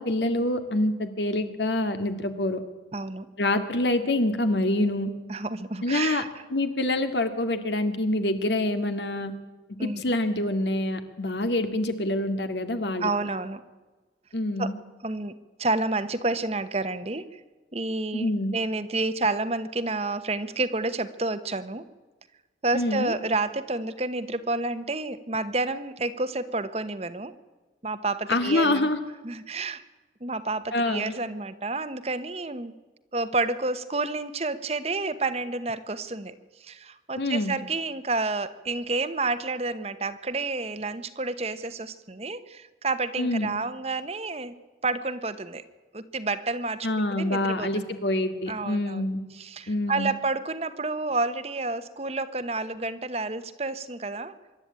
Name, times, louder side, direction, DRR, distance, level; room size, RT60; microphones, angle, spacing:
voice 1, 0.0-2.6 3.4-5.1 5.8-6.2 6.5-9.3 9.8-13.1 14.3-14.7 18.1-18.5 22.7-23.1 28.3-29.0 30.7-31.1 37.2-37.6 43.2-43.6 46.8-49.2 49.7-50.1, left 1 dB, 80° left, 8 dB, 2.1 m, -26 dB
voice 2, 2.9-3.3 5.3-6.3 9.8-10.0 13.0-13.6 14.6-14.7 15.0-15.3 15.6-17.4 17.7-21.8 22.6-27.3 27.8-28.9 29.2-29.8 30.2-32.7 33.1-36.3 36.6-44.5 44.8-45.6 45.9-46.9 47.2-47.9 48.5-49.1 49.3-54.3, right 3 dB, 35° right, 12 dB, 1.1 m, -29 dB
25.0 x 12.0 x 8.9 m, 1.3 s
head